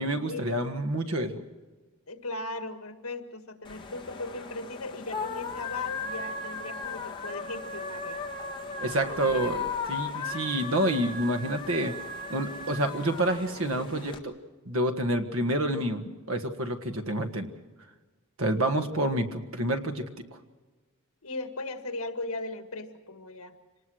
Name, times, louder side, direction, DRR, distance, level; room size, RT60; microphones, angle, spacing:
voice 1, 0.0-1.4 8.8-9.6 9.9-11.9 12.3-14.3 14.6-17.5 18.4-20.1, right 1 dB, 65° right, 7 dB, 1.6 m, -28 dB
voice 2, 2.1-8.2 8.6-9.7 16.1-16.2 21.2-23.6, left 2 dB, 75° left, 7 dB, 1.8 m, -38 dB
sound 1, 3.6-14.2, left 3 dB, 20° left, 1.6 m, -37 dB
25.5 x 19.0 x 6.4 m, 1.3 s
head